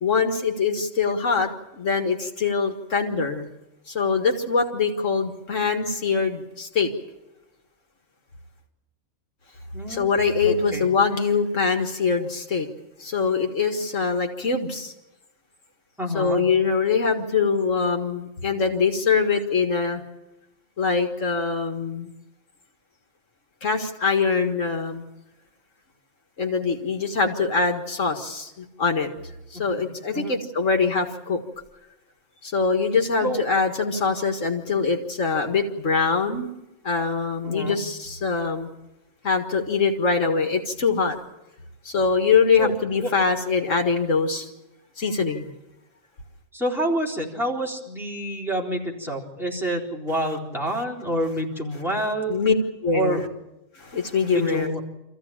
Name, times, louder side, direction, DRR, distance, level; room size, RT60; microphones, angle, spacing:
voice 1, 0.0-3.5 3.9-6.9 9.9-12.7 13.0-14.9 16.1-20.0 20.8-22.1 23.6-25.0 26.4-29.1 29.5-31.4 32.4-36.5 36.8-38.7 39.2-41.2 41.9-44.5 45.0-45.5 52.3-52.5 52.8-53.3 53.8-54.7, left 5 dB, 80° left, 4 dB, 2.1 m, -23 dB
voice 2, 9.7-10.1 10.4-10.9 16.0-16.4 29.5-29.9 30.1-30.4 33.2-33.4 37.4-37.8 42.6-42.7 43.0-43.1 46.5-52.4 52.9-53.3 54.3-54.8, right 1 dB, ahead, -2 dB, 3.9 m, -28 dB
26.0 x 15.0 x 8.7 m, 0.96 s
omnidirectional pair, 1.3 m